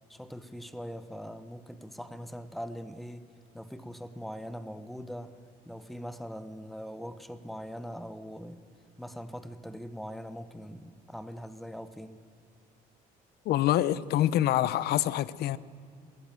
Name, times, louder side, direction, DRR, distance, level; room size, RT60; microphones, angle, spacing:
voice 1, 0.1-8.6 9.0-12.2, equal, ahead, 1.0 m, -42 dB
voice 2, 13.5-15.6, left 13 dB, 70° left, 0.7 m, -26 dB
21.0 x 16.5 x 7.7 m
cardioid pair, 110°, 17 cm